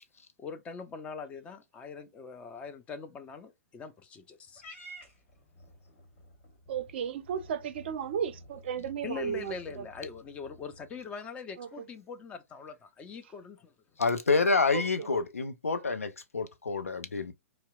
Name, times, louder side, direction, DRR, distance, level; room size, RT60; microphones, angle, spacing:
voice 1, 0.4-4.6 9.0-13.7 15.0-15.2 17.2-17.3, left 5 dB, 15° left, 0.4 m, -42 dB
Purr / Meow, 4.5-11.0, equal, 40° left, 1.7 m, -52 dB
voice 2, 6.7-10.1 11.6-11.7 14.7-15.1, right 8 dB, 50° right, 0.4 m, -35 dB
voice 3, 14.0-17.3, left 4 dB, 80° left, 0.5 m, -28 dB
2.7 x 2.1 x 2.3 m
figure-of-eight pair, 115°, 8 cm